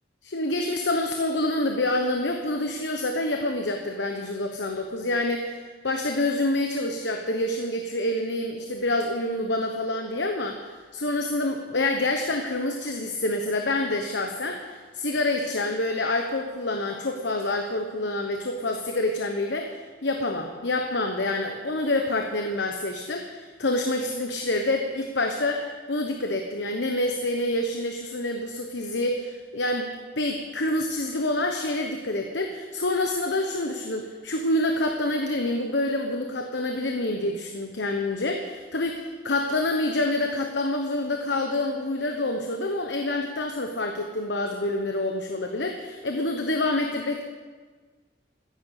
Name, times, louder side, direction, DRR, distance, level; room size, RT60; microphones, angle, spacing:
voice 1, 0.2-19.8 20.0-29.9 30.2-47.2, left 2 dB, 80° left, 4 dB, 1.2 m, -27 dB
14.5 x 10.5 x 8.3 m, 1.5 s
head